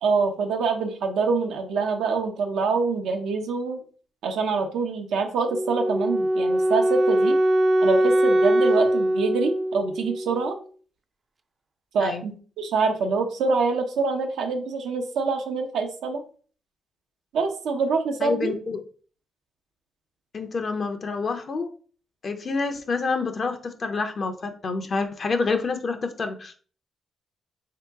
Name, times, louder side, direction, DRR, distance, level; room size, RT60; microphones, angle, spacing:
voice 1, 0.0-3.8 4.2-7.4 7.8-10.6 11.9-16.2 17.3-18.5, right 4 dB, 90° right, 3 dB, 0.7 m, -25 dB
Wind instrument woodwind instrument, 5.5-10.5, right 1 dB, 35° right, 0.4 m, -22 dB
voice 2, 18.2-18.8 20.3-21.7 22.2-26.5, left 4 dB, 50° left, 6 dB, 0.6 m, -28 dB
3.6 x 2.9 x 3.5 m, 0.41 s
cardioid pair, 90°, 0 cm